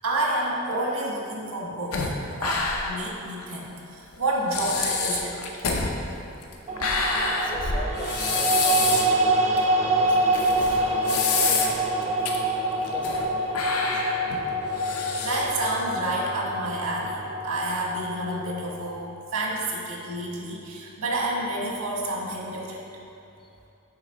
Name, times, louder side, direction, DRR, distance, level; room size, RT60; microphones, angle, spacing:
voice 1, 0.0-2.1 2.4-5.4 9.4-9.5 15.2-19.0 19.3-22.8, right 1 dB, 80° right, -3 dB, 1.4 m, -29 dB
sound 1, 1.9-3.1 3.4-3.5 4.1-4.2 4.5-9.2 9.6-9.7 10.3-11.9 12.3-12.4 12.8-13.3 13.5-15.7, left 4 dB, 80° left, 0.7 m, -27 dB
sound 2, 6.7-18.9, right 1 dB, 30° right, 0.4 m, -26 dB
voice 2, 7.3-9.1 9.8-12.2 12.8-14.0 23.4-23.5, left 1 dB, 20° left, 0 dB, 0.5 m, -41 dB
7.5 x 4.9 x 3.9 m, 2.7 s
head